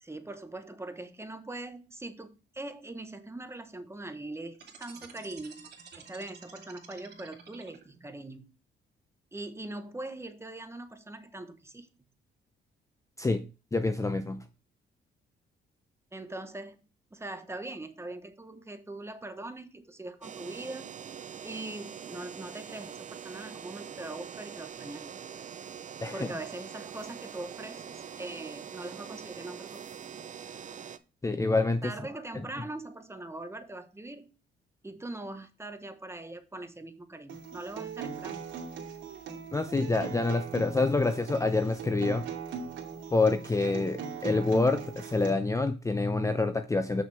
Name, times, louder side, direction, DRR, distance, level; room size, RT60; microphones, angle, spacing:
voice 1, 0.0-5.7 6.0-8.6 9.3-11.9 16.1-16.8 17.1-20.9 21.4-25.2 26.1-29.9 31.8-34.3 34.8-38.4, right 2 dB, 15° right, 1.1 m, -42 dB
sound 1, 4.5-8.1, right 6 dB, 55° right, 2.6 m, -50 dB
voice 2, 13.7-14.4 26.0-26.3 31.2-31.9 39.5-42.3 43.1-47.0, left 3 dB, 15° left, 0.6 m, -27 dB
sound 2, 20.2-31.0, right 7 dB, 40° right, 0.7 m, -44 dB
Acoustic guitar, 37.3-45.3, right 6 dB, 75° right, 2.4 m, -39 dB
7.3 x 6.3 x 3.4 m
cardioid pair, 90°, 20 cm